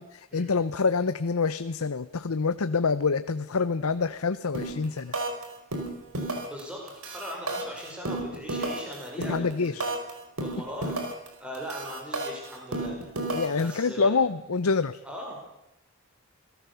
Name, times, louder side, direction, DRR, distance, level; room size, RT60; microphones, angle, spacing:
voice 1, 0.0-5.1 9.3-9.9 13.3-15.0, left 4 dB, 90° left, 12 dB, 0.7 m, -26 dB
sound 1, 4.5-4.8 5.1-5.4 5.7-6.6 6.9-10.1 10.4-11.3 11.5-13.7, right 2 dB, 85° right, 5.0 m, -32 dB
voice 2, 6.4-9.9 10.4-11.0 11.4-13.3 13.6-14.1 15.0-15.5, equal, 5° right, -1 dB, 5.5 m, -39 dB
27.5 x 17.5 x 7.0 m, 0.88 s
head